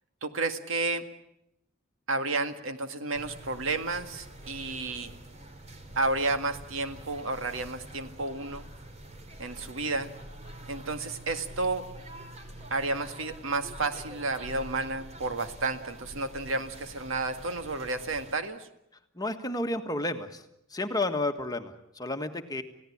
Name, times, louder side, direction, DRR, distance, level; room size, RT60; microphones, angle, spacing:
voice 1, 0.2-1.0 2.1-5.1 6.0-8.7 9.4-10.1 10.7-11.8 12.7-18.7, right 3 dB, 70° right, 8 dB, 1.9 m, -31 dB
sound 1, 3.1-18.3, right 1 dB, 35° right, 2.9 m, -46 dB
voice 2, 19.2-20.4 20.7-22.6, left 2 dB, 20° left, 6 dB, 1.6 m, -31 dB
29.5 x 17.0 x 8.7 m, 0.82 s
head